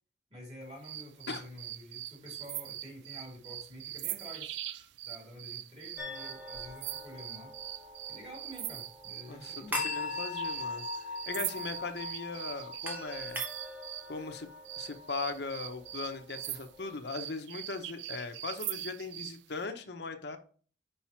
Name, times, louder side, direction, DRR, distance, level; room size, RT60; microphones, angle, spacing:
voice 1, 0.3-4.6 5.0-7.6 8.1-9.9, equal, 35° right, 2.6 m, -49 dB
sound 1, 0.8-14.1 14.6-19.4, right 13 dB, 70° right, 0.3 m, -42 dB
sound 2, 6.0-17.0, left 3 dB, 10° right, 0.9 m, -41 dB
voice 2, 9.3-13.5 14.1-14.5 14.8-20.4, left 4 dB, 60° left, 0.7 m, -39 dB
5.7 x 5.3 x 4.3 m
head